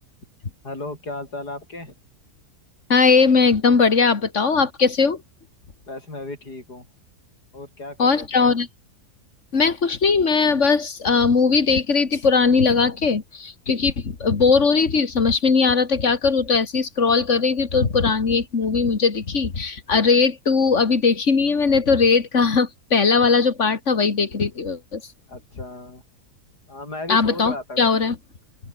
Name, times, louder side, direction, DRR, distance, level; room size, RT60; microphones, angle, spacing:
voice 1, 0.6-2.0 5.9-6.9 7.5-8.5 25.3-26.0 26.7-27.8, left 2 dB, 85° left, 7.9 m, -35 dB
voice 2, 2.9-5.2 8.0-8.7 9.5-25.0 27.1-28.2, left 5 dB, 50° left, 2.4 m, -19 dB
open air
omnidirectional pair, 1.7 m